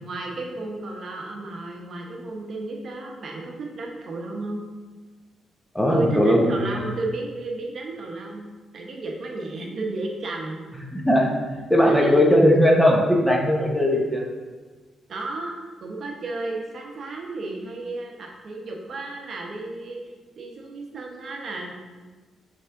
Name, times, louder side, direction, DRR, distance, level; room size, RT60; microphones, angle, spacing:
voice 1, 0.0-4.6 5.9-8.5 8.7-10.6 11.8-12.3 15.1-15.5 15.8-20.0 20.4-21.7, right 2 dB, 55° right, 0 dB, 0.9 m, -32 dB
voice 2, 5.7-6.9 10.9-11.3 11.7-14.2, equal, 5° left, -1 dB, 0.8 m, -18 dB
7.4 x 3.4 x 3.7 m, 1.4 s
cardioid pair, 105°, 0 cm